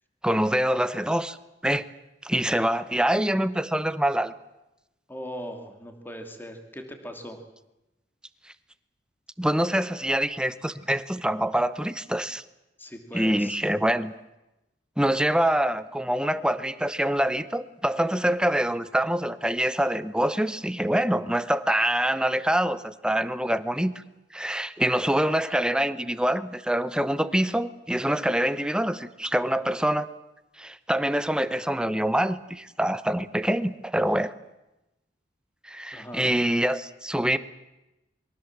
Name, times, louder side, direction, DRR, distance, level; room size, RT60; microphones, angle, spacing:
voice 1, 0.2-1.4 1.6-1.9 2.2-4.3 9.4-12.4 13.1-14.1 15.0-24.0 24.3-30.1 30.6-34.3 35.6-37.4, right 1 dB, 5° right, 13 dB, 0.9 m, -25 dB
voice 2, 5.1-7.4 12.8-13.6 35.9-36.3, equal, 10° left, 5 dB, 2.7 m, -39 dB
27.5 x 22.5 x 7.5 m, 0.95 s
head